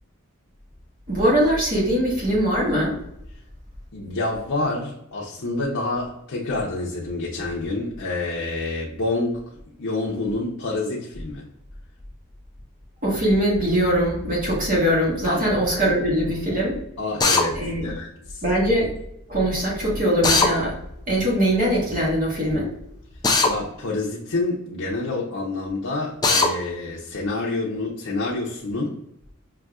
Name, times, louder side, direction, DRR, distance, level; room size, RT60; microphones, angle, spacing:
voice 1, 1.1-3.0 13.0-16.8 17.5-17.9 18.4-18.9 19.3-20.8 21.1-22.7, equal, 40° right, -6 dB, 1.3 m, -21 dB
voice 2, 3.9-9.4 9.8-11.4 15.3-15.4 15.9-16.0 17.0-18.4 23.4-29.0, left 2 dB, 70° left, -4 dB, 0.7 m, -28 dB
Drill, 17.2-17.5 20.2-20.5 23.2-23.5 26.2-26.5, left 3 dB, 20° left, 0.4 m, -18 dB
5.8 x 2.7 x 2.4 m, 0.78 s
head